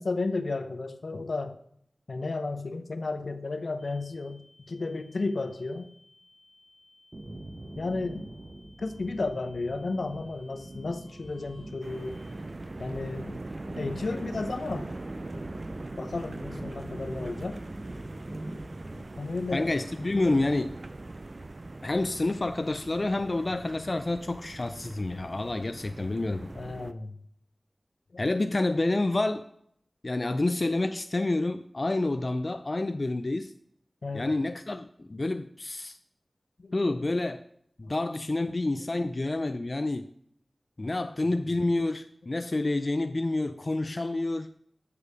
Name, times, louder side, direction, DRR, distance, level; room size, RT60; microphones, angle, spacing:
voice 1, 0.0-1.6 2.1-5.9 7.8-8.3 8.8-12.2 12.8-13.4 13.8-14.9 16.0-17.6 19.2-19.7 26.5-27.1 34.0-34.4 36.6-36.8 40.8-40.9 41.6-41.7 43.8-44.2, left 3 dB, 80° left, 9 dB, 0.7 m, -33 dB
sound 1, 3.8-12.4, left 2 dB, 25° left, 2.0 m, -60 dB
sound 2, 7.1-19.0, right 1 dB, 35° right, 1.0 m, -43 dB
sound 3, 11.8-26.9, right 2 dB, 55° right, 0.4 m, -42 dB
voice 2, 19.5-20.7 21.8-26.5 28.2-29.4 30.0-33.5 34.1-36.0 36.7-37.4 37.8-40.1 40.8-44.5, left 2 dB, 50° left, 10 dB, 0.4 m, -28 dB
7.0 x 6.7 x 4.9 m, 0.70 s
wide cardioid pair, 50°, 0 cm